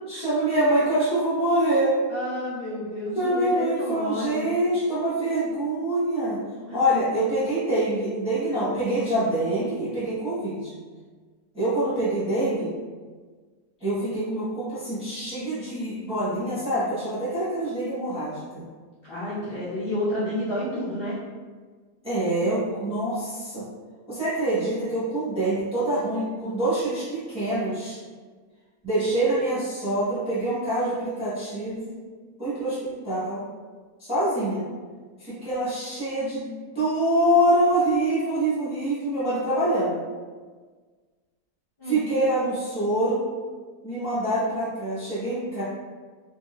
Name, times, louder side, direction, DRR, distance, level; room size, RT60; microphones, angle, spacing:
voice 1, 0.1-2.0 3.1-6.4 6.7-10.7 11.5-12.7 13.8-18.6 22.0-23.6 24.1-28.0 28.8-32.0 32.4-32.8 33.0-33.4 34.0-34.6 35.2-40.0 41.8-43.2 43.8-45.6, right 1 dB, 5° right, -12 dB, 1.0 m, -25 dB
voice 2, 2.1-4.5 6.7-6.8 19.1-21.2 41.8-42.0, left 1 dB, 40° left, -12 dB, 1.1 m, -30 dB
4.1 x 2.8 x 2.4 m, 1.5 s
omnidirectional pair, 1.7 m